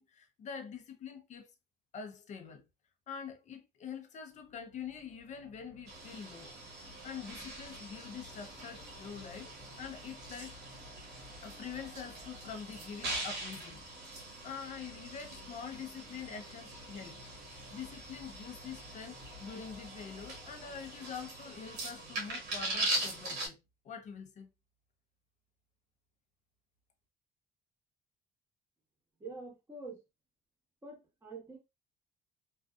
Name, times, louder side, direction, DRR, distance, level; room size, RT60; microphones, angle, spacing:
voice 1, 0.0-1.5 1.9-2.6 3.1-6.5 7.0-9.5 9.8-10.6 11.4-13.9 14.4-17.2 17.7-24.5, left 7 dB, 45° left, 0.6 m, -45 dB
sound 1, 4.3-21.3, left 1 dB, 55° right, 1.2 m, -56 dB
sound 2, 5.9-23.5, right 2 dB, 90° right, 0.9 m, -42 dB
voice 2, 29.2-30.0 30.8-31.6, right 3 dB, 15° right, 1.1 m, -46 dB
2.5 x 2.4 x 2.3 m
cardioid pair, 110°, 17 cm